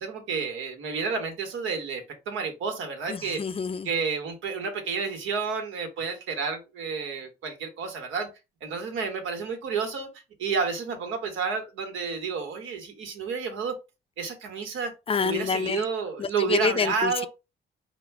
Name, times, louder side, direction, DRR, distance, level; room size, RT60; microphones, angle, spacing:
voice 1, 0.0-3.4 3.8-8.3 8.6-10.1 10.4-13.7 14.2-14.9 15.2-17.3, right 5 dB, 80° right, 1.5 m, -30 dB
voice 2, 3.1-3.9 15.1-15.9 16.2-17.3, left 5 dB, 30° left, 0.5 m, -27 dB
5.0 x 2.3 x 4.6 m
cardioid pair, 90°, 20 cm